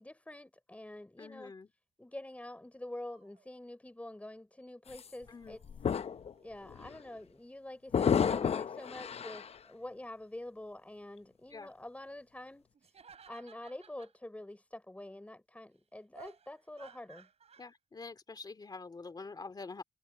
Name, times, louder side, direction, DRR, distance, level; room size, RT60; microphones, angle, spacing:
voice 1, 0.0-1.5 2.0-5.6 6.4-12.9 13.3-17.3, left 1 dB, 10° left, 5.8 m, -47 dB
voice 2, 1.2-1.7 5.3-5.6 11.5-11.7 17.6-19.8, left 4 dB, 30° left, 2.5 m, -46 dB
sound 1, 2.9-3.7 5.0-6.6 8.0-8.4 8.7-9.4 12.7-14.2 16.1-17.7, right 6 dB, 55° right, 4.7 m, -59 dB
sound 2, 4.9-5.1 5.6-6.3 6.7-6.9 7.9-9.6, left 7 dB, 50° left, 0.7 m, -31 dB
cardioid pair, 100°, 13 cm